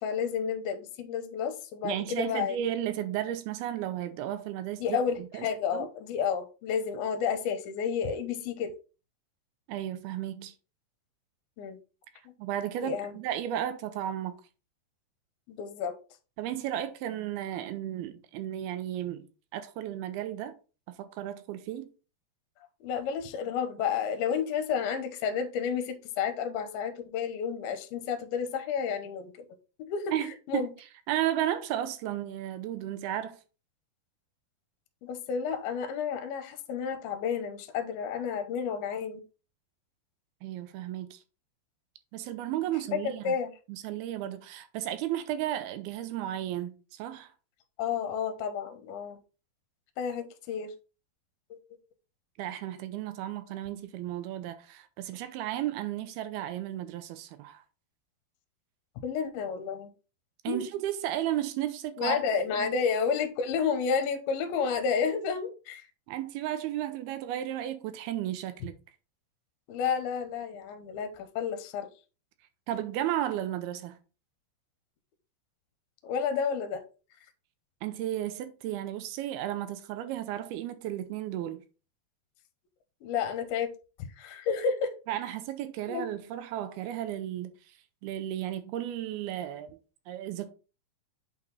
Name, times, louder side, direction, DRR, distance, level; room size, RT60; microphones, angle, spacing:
voice 1, 0.0-2.6 4.8-8.7 11.6-11.8 12.3-12.4 12.8-13.2 15.5-15.9 22.8-29.5 29.8-30.1 30.5-30.7 35.0-39.2 42.9-43.5 47.8-49.2 50.0-50.7 51.5-51.6 59.0-59.9 60.5-60.6 62.0-65.8 69.7-71.9 76.0-76.8 83.0-83.7 84.2-84.9 85.9-86.1, left 6 dB, 75° left, 2.7 m, -31 dB
voice 2, 1.8-5.5 5.7-5.9 9.7-10.5 12.4-14.4 16.4-20.5 20.9-21.9 30.1-30.7 31.1-33.4 40.4-41.2 42.1-43.4 43.7-47.3 52.4-57.6 60.4-62.2 62.6-62.7 66.1-68.7 72.7-74.0 77.8-81.6 85.1-87.5 88.0-89.8 90.1-90.5, right 12 dB, 80° right, 2.4 m, -34 dB
8.3 x 4.0 x 4.0 m
omnidirectional pair, 4.7 m